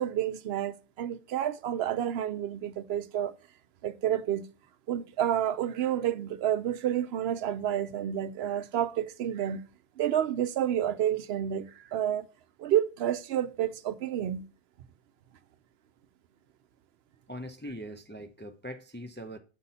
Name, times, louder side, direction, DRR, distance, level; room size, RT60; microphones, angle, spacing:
voice 1, 0.0-3.3 3.8-4.5 4.9-9.6 10.0-12.3 12.6-14.4, right 10 dB, 75° right, 0.8 m, -29 dB
voice 2, 17.3-19.4, equal, 15° left, 0.4 m, -41 dB
7.3 x 4.1 x 5.4 m
omnidirectional pair, 1.1 m